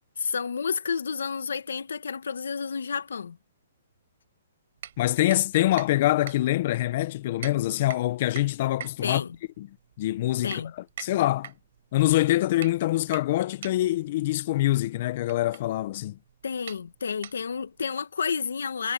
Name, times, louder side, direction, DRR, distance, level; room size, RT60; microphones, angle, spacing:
voice 1, 0.2-3.4 9.0-9.4 10.4-10.7 16.4-18.9, left 6 dB, 90° left, 1.6 m, -30 dB
sound 1, 4.8-17.8, right 10 dB, 55° right, 5.8 m, -45 dB
voice 2, 5.0-9.2 9.6-9.7 10.0-10.6 11.0-11.5 11.9-16.2, left 15 dB, 40° left, 0.8 m, -25 dB
hypercardioid pair, 165°, 0 cm